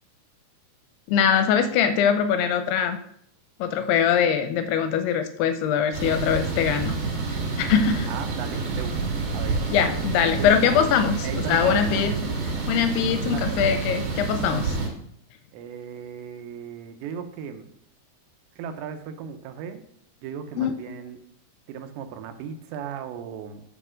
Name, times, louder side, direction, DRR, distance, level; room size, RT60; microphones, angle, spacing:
voice 1, 1.1-3.0 3.6-6.9 7.6-8.1 9.7-12.2 12.7-14.7 20.6-20.7, left 7 dB, 80° left, 9 dB, 2.5 m, -22 dB
sound 1, 5.9-14.9, right 4 dB, 60° right, 4.0 m, -28 dB
voice 2, 8.1-9.7 10.2-10.6 11.2-12.1 13.1-13.7 15.5-17.7 18.6-19.8 20.2-21.2 21.7-23.6, right 7 dB, 90° right, 8 dB, 3.1 m, -36 dB
7.8 x 5.3 x 6.3 m, 0.69 s
omnidirectional pair, 4.9 m